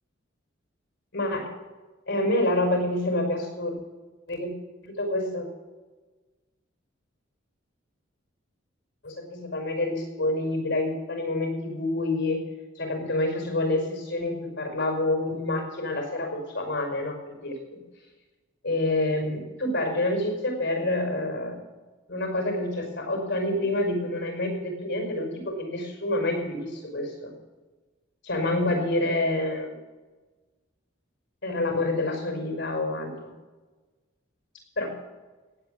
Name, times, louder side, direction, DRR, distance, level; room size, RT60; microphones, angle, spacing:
voice 1, 1.1-1.5 2.1-3.8 4.3-4.5 4.8-5.5 9.0-12.4 12.8-17.8 18.6-21.6 22.1-27.3 28.2-29.7 31.4-33.3 34.8-35.0, left 1 dB, 65° left, 3 dB, 5.4 m, -27 dB
17.5 x 8.3 x 7.8 m, 1.3 s
head